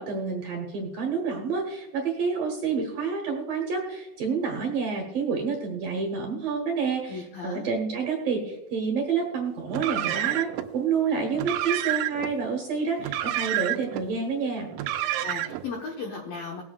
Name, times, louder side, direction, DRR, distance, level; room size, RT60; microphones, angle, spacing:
voice 1, 0.0-14.7, right 5 dB, 65° right, 1 dB, 2.3 m, -28 dB
voice 2, 7.1-7.6 15.2-16.6, left 4 dB, 75° left, 0 dB, 2.1 m, -36 dB
Car, 9.7-10.7 11.3-12.3 13.0-14.0 14.7-15.7, right 13 dB, 85° right, 2.9 m, -29 dB
21.0 x 8.7 x 2.4 m, 1.1 s
omnidirectional pair, 5.8 m